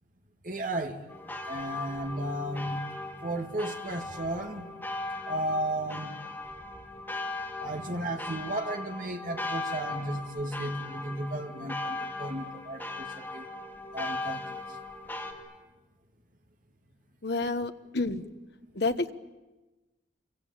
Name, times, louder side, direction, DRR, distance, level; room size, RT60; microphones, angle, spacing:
voice 1, 0.4-1.1 1.5-2.8 3.2-4.9 5.3-6.2 7.6-13.5 13.9-14.5 18.1-18.2, right 1 dB, 45° right, 4 dB, 2.1 m, -34 dB
sound 1, 1.1-15.3, left 2 dB, 10° left, 2.8 m, -38 dB
voice 2, 17.2-18.2 18.7-19.1, left 3 dB, 60° left, 9 dB, 1.2 m, -29 dB
27.0 x 23.5 x 8.8 m, 1.1 s
head